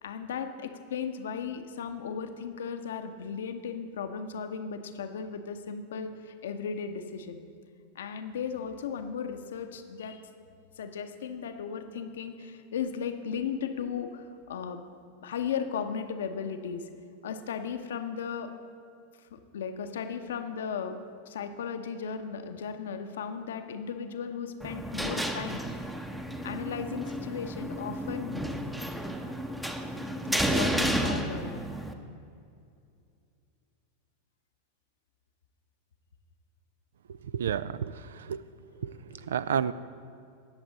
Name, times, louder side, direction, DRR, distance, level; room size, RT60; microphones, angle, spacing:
voice 1, 0.0-7.4 7.9-10.2 10.8-14.8 15.2-16.8 17.2-18.5 19.3-21.0 21.2-25.6 26.4-28.5 30.2-31.7 38.6-39.3, left 6 dB, 60° left, 7 dB, 0.8 m, -36 dB
sound 1, 24.6-31.9, equal, 5° right, 0.8 m, -32 dB
voice 2, 37.3-37.9 38.3-38.4 38.8-38.9 39.3-39.7, right 8 dB, 65° right, 16 dB, 0.3 m, -29 dB
18.5 x 7.0 x 4.0 m, 2.4 s
figure-of-eight pair, 90°, 0 cm